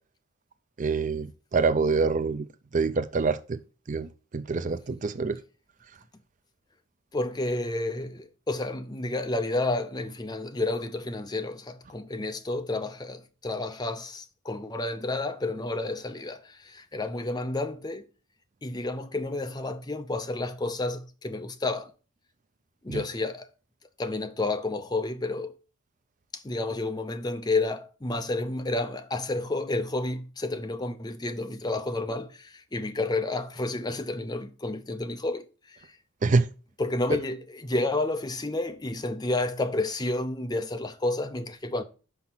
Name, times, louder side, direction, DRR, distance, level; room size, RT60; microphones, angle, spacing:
voice 1, 0.8-2.5 2.7-3.6 3.9-5.4 22.9-23.0 36.2-36.5, right 4 dB, 40° right, 0.4 m, -26 dB
voice 2, 7.1-18.0 18.6-21.9 22.8-23.5 24.0-25.5 26.3-35.4 36.8-41.8, left 2 dB, 20° left, 0.6 m, -30 dB
5.6 x 5.6 x 6.0 m
head